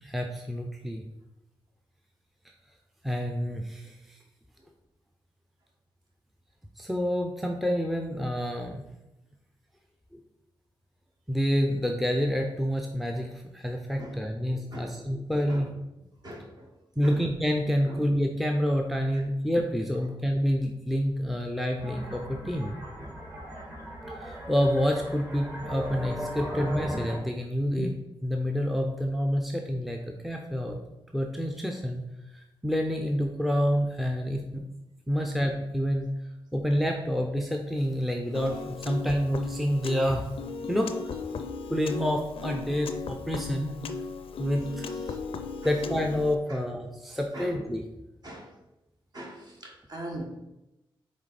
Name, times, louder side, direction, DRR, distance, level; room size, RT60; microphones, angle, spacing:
voice 1, 0.0-1.0 2.4-2.5 3.0-4.2 6.8-8.8 10.1-10.2 11.3-15.7 17.0-22.7 24.1-27.9 28.2-30.8 31.1-32.0 32.3-34.6 35.1-36.1 36.5-40.3 40.7-41.1 41.7-43.8 44.4-45.2 45.6-47.8, equal, ahead, 2 dB, 0.5 m, -28 dB
voice 2, 16.2-16.7 17.0-17.2 17.9-18.0 19.1-19.2 27.8-27.9 35.2-35.3 45.6-45.8 46.5-46.6 47.3-47.5 48.2-48.5 49.1-50.2, right 1 dB, 45° right, -1 dB, 1.7 m, -40 dB
sound 1, 21.8-27.2, equal, 25° right, 1.5 m, -37 dB
Piano, 38.3-46.4, left 4 dB, 85° left, 0.5 m, -37 dB
6.2 x 4.2 x 4.2 m, 0.96 s
wide cardioid pair, 105°, 9 cm